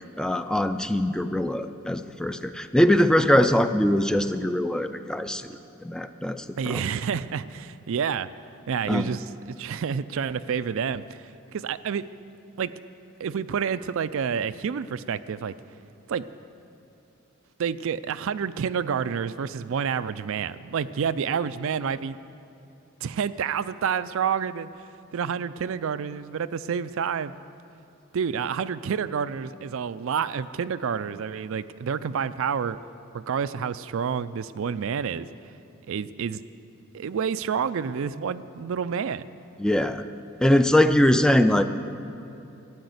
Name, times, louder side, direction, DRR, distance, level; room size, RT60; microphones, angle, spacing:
voice 1, 0.2-5.4 5.8-6.8 8.9-9.1 39.6-40.0 40.4-41.6, left 1 dB, 5° left, 10 dB, 0.4 m, -22 dB
voice 2, 6.6-8.3 8.7-11.2 11.5-12.1 12.6-12.7 13.2-15.5 16.1-16.3 17.6-22.2 23.0-24.7 25.1-27.3 28.1-32.8 33.1-35.3 35.9-36.4 36.9-39.3, right 7 dB, 65° right, 14 dB, 0.4 m, -29 dB
13.0 x 9.4 x 8.0 m, 2.9 s
head